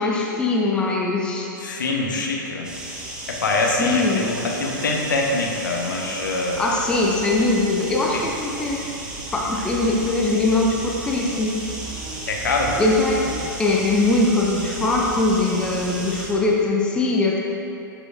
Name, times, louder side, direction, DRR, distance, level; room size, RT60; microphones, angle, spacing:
voice 1, 0.0-1.5 3.8-4.3 6.6-8.8 9.3-11.6 12.8-13.3 13.6-17.4, left 2 dB, 10° left, -2 dB, 0.6 m, -21 dB
voice 2, 1.6-2.7 3.3-6.6 8.1-8.2 12.3-12.8, left 2 dB, 65° left, -1 dB, 1.0 m, -24 dB
sound 1, 2.6-16.3, right 1 dB, 5° right, 1.2 m, -35 dB
sound 2, 6.5-16.4, right 1 dB, 45° right, 1.0 m, -40 dB
12.5 x 4.9 x 2.5 m, 2.7 s
figure-of-eight pair, 105°, 11 cm